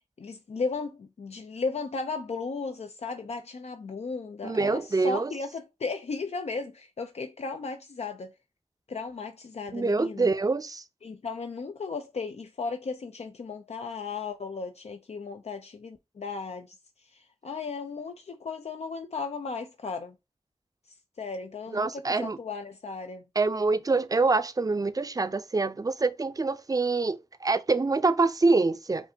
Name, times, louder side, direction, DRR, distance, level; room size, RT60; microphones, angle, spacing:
voice 1, 0.2-8.3 8.9-10.3 11.0-20.1 21.2-23.2, left 4 dB, 80° left, 0.4 m, -35 dB
voice 2, 4.4-5.3 9.7-10.8 21.7-22.4 23.4-29.1, right 3 dB, 35° right, 0.4 m, -25 dB
5.1 x 2.5 x 2.6 m
wide cardioid pair, 65°, 11 cm